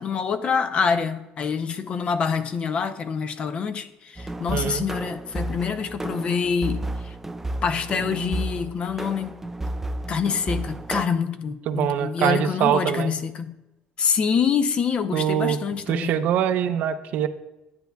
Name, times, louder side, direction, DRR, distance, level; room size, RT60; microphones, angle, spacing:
voice 1, 0.0-7.2 7.6-9.4 10.1-13.5 14.0-16.2, left 6 dB, 40° left, 10 dB, 0.6 m, -26 dB
sound 1, 4.2-11.0, right 1 dB, 10° right, 0.3 m, -32 dB
voice 2, 4.5-4.9 11.7-13.1 15.1-15.6 15.9-17.3, right 9 dB, 65° right, 10 dB, 0.5 m, -23 dB
10.5 x 9.1 x 2.3 m, 0.97 s
cardioid pair, 115°, 3 cm